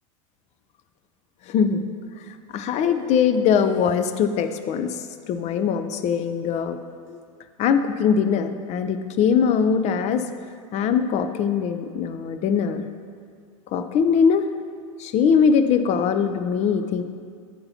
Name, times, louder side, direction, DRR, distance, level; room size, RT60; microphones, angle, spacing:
voice 1, 1.5-1.9 2.5-6.8 7.1-7.2 7.6-10.2 10.7-12.9 13.7-14.4 15.0-17.0, left 6 dB, 40° left, 9 dB, 0.5 m, -21 dB
8.5 x 5.8 x 2.8 m, 2.2 s
hypercardioid pair, 100°, 17 cm